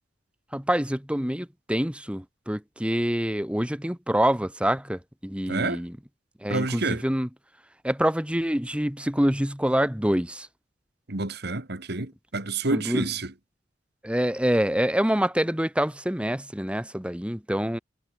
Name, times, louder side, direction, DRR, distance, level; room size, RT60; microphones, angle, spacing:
voice 1, 0.5-6.0 6.4-7.3 7.8-10.5 12.7-13.1 14.0-17.8, equal, 5° right, 1.9 m, -26 dB
voice 2, 5.5-5.8 6.5-7.0 11.1-13.3, right 2 dB, 60° right, 2.2 m, -28 dB
head